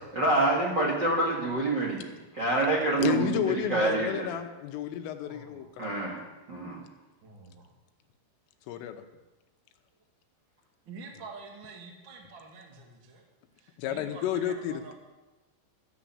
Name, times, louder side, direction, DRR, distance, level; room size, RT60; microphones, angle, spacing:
voice 1, 0.1-3.4 3.7-4.3 5.8-6.8, right 2 dB, 85° right, -3 dB, 1.0 m, -27 dB
voice 2, 3.0-5.9 8.7-9.0 13.8-14.9, left 9 dB, 85° left, 7 dB, 3.5 m, -31 dB
voice 3, 7.2-7.6 10.9-13.2 13.9-14.9, right 4 dB, 50° right, 0 dB, 1.3 m, -46 dB
14.0 x 7.6 x 8.5 m, 1.1 s
omnidirectional pair, 5.7 m